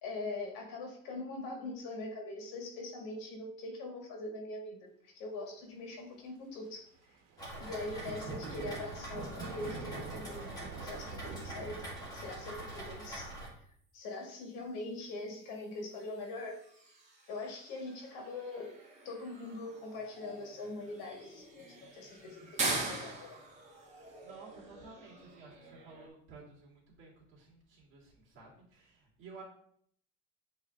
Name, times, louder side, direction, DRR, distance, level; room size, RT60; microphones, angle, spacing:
voice 1, 0.0-4.8 5.0-6.9 7.6-10.5 10.8-11.9 12.1-13.3 13.9-16.6 17.3-18.7 19.1-23.4, left 2 dB, 80° left, 2 dB, 1.8 m, -42 dB
Thunder / Rain, 7.3-12.8, right 4 dB, 85° right, 1.1 m, -46 dB
Rain, 7.4-13.5, right 1 dB, 10° left, 1.7 m, -44 dB
sound 1, 14.1-26.1, right 3 dB, 20° right, 1.3 m, -43 dB
voice 2, 24.0-29.4, right 4 dB, 40° right, -5 dB, 2.4 m, -54 dB
8.3 x 3.3 x 3.5 m, 0.65 s
cardioid pair, 160°, 31 cm